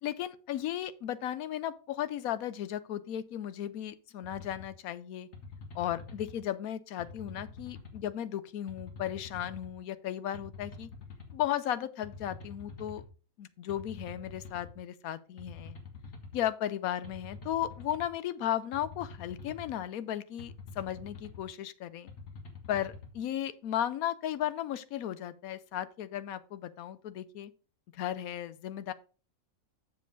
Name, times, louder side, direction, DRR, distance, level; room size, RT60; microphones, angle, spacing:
voice 1, 0.0-5.3 5.7-10.9 11.3-13.0 13.4-15.8 16.3-22.1 22.7-27.5 27.9-28.9, left 11 dB, 85° left, 1.1 m, -35 dB
sound 1, 4.2-4.7 5.3-6.4 7.0-8.0 8.7-9.7 10.3-11.4 12.0-13.1 13.7-14.7 15.4-16.4 17.0-18.1 18.7-19.8 20.4-21.4 22.1-23.1, left 4 dB, 65° left, 2.0 m, -46 dB
7.1 x 6.9 x 3.9 m
omnidirectional pair, 1.5 m